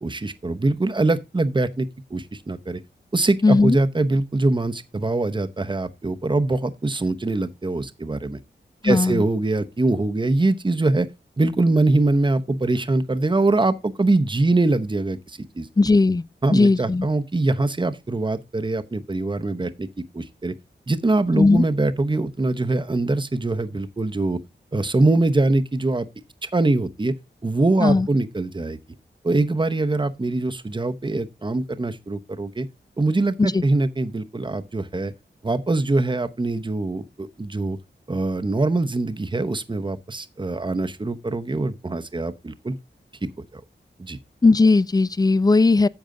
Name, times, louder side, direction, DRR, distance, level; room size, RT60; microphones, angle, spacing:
voice 1, 0.0-2.8 3.1-8.4 8.8-11.1 11.4-15.7 16.4-19.9 20.1-20.5 20.9-24.4 24.7-26.1 26.4-27.1 27.4-28.8 29.2-32.7 33.0-35.1 35.4-37.8 38.1-42.8 43.4-43.6 44.0-44.2, right 2 dB, 25° right, 0.9 m, -23 dB
voice 2, 3.4-3.8 8.8-9.2 15.8-16.2 16.5-17.1 21.3-21.6 27.8-28.1 33.4-33.6 44.4-45.9, left 3 dB, 20° left, 0.4 m, -17 dB
10.5 x 7.1 x 3.8 m
wide cardioid pair, 75°, 19 cm